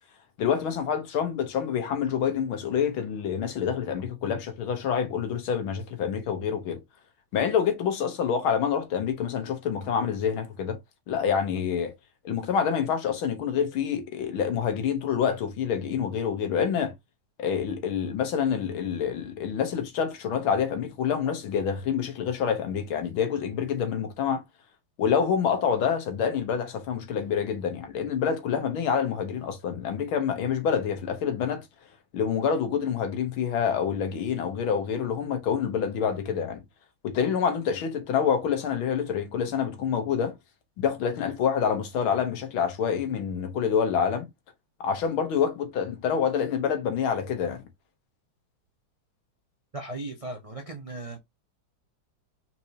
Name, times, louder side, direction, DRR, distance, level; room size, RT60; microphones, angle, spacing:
voice 1, 0.4-6.8 7.3-10.8 11.1-11.9 12.2-16.9 17.4-24.4 25.0-31.7 32.1-36.6 37.0-40.4 40.8-44.3 44.8-47.6, left 7 dB, 80° left, 1.9 m, -27 dB
voice 2, 49.7-51.2, right 2 dB, 50° right, 0.4 m, -37 dB
4.4 x 4.3 x 2.8 m
omnidirectional pair, 2.2 m